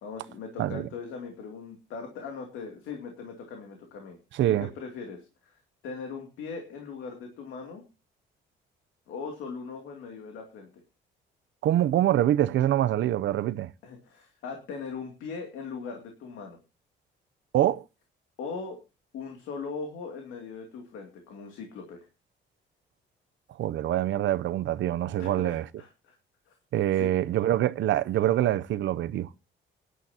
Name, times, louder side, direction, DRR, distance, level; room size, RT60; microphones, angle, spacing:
voice 1, 0.0-4.2 4.5-7.8 9.1-10.7 13.8-16.6 18.4-18.8 19.1-22.1 25.2-26.2 26.5-26.6 27.0-27.1, left 5 dB, 90° left, 2.6 m, -40 dB
voice 2, 4.3-4.7 11.6-13.7 17.5-17.8 23.6-25.6 26.7-29.3, right 12 dB, 70° right, 0.6 m, -25 dB
19.0 x 11.0 x 2.8 m
cardioid pair, 90°, 20 cm